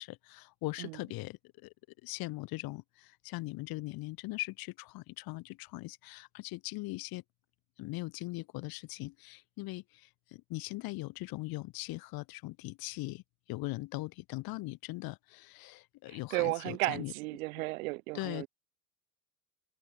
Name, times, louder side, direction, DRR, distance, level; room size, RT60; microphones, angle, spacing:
voice 1, 0.0-1.7 2.0-7.2 7.8-13.2 13.5-17.1 18.1-18.5, left 21 dB, 60° left, 1.3 m, -40 dB
voice 2, 16.1-18.5, right 23 dB, 85° right, 0.7 m, -34 dB
supercardioid pair, 90°, 41 cm